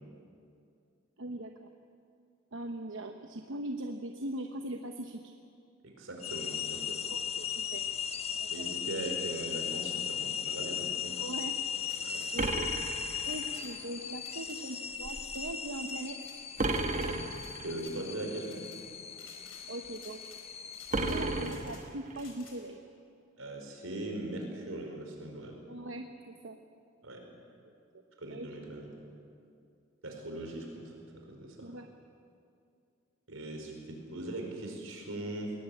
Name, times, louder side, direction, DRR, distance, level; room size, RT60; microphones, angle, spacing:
voice 1, 1.2-1.7 2.5-5.3 7.1-7.8 8.4-8.7 11.1-11.6 12.3-12.7 13.3-16.2 19.7-20.2 21.0-22.8 25.7-26.6 28.3-28.5 31.6-31.9, right 1 dB, 70° right, 5 dB, 1.0 m, -40 dB
voice 2, 5.8-7.0 8.5-11.2 12.0-12.2 17.6-18.6 23.4-25.6 27.0-27.2 28.2-28.9 30.0-30.9 31.3-31.7 33.3-35.5, right 1 dB, 90° right, 2 dB, 4.8 m, -40 dB
sound 1, 6.2-21.5, left 8 dB, 30° left, 1.0 m, -38 dB
sound 2, 11.8-12.3 13.2-13.7 14.2-14.6 15.0-15.4 15.8-16.4 16.7-17.5 17.8-18.0 18.4-18.8 19.1-19.7 19.9-20.4 20.7-21.8 22.1-22.6, left 6 dB, 90° left, 4.4 m, -55 dB
sound 3, 12.4-13.8 16.6-17.7 20.9-22.2, right 2 dB, 40° right, 1.4 m, -33 dB
21.5 x 18.0 x 8.5 m, 2.5 s
head